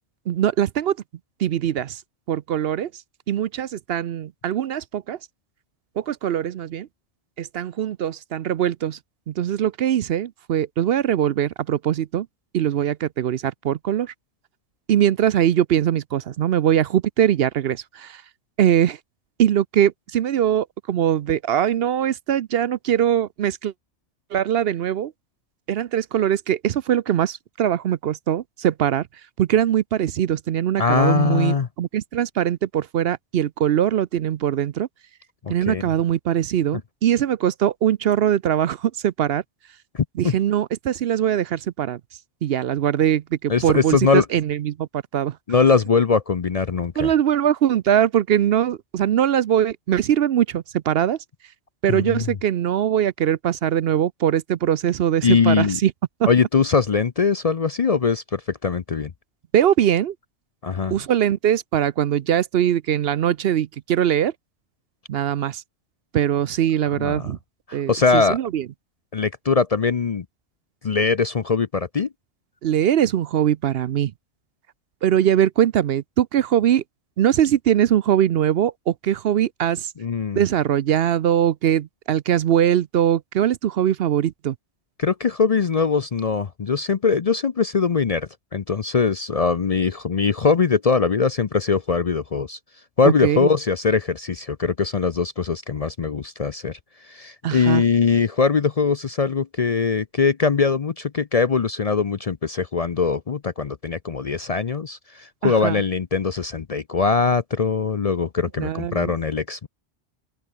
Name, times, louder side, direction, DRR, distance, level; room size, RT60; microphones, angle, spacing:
voice 1, 0.3-1.0 1.4-2.0 2.3-2.9 3.3-5.2 6.0-6.9 7.4-9.0 9.3-12.3 12.5-14.1 14.9-18.2 18.6-19.0 19.4-23.7 24.3-25.1 25.7-29.0 29.4-34.9 35.5-39.4 40.2-42.0 42.4-45.3 47.0-51.2 51.8-55.9 56.2-56.3 59.5-60.1 60.9-64.3 65.1-65.6 66.1-67.4 67.7-68.7 72.6-74.1 75.0-76.8 77.2-79.9 80.3-84.5 93.0-93.5 97.4-97.8 105.4-105.8 108.6-109.1, right 10 dB, 65° right, 0.8 m, -21 dB
voice 2, 30.8-31.7 35.4-35.8 39.9-40.4 43.5-44.3 45.5-47.1 51.9-52.3 55.2-55.8 56.3-59.1 60.6-60.9 66.9-67.3 67.7-68.4 69.1-70.2 70.8-72.1 80.0-80.4 85.0-92.6 93.0-96.8 97.1-109.7, left 5 dB, 40° left, 0.6 m, -21 dB
open air
omnidirectional pair, 1.2 m